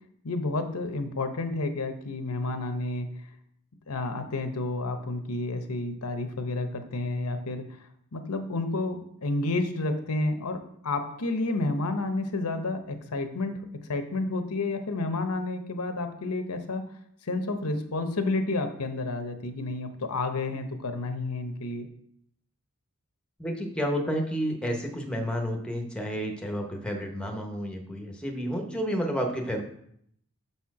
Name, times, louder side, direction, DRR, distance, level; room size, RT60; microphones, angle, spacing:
voice 1, 0.2-3.1 3.9-7.6 8.1-13.6 13.9-16.8 17.2-21.9, left 2 dB, 85° left, 7 dB, 0.8 m, -30 dB
voice 2, 23.4-29.6, equal, 5° left, 2 dB, 0.8 m, -30 dB
6.9 x 4.3 x 4.7 m, 0.70 s
head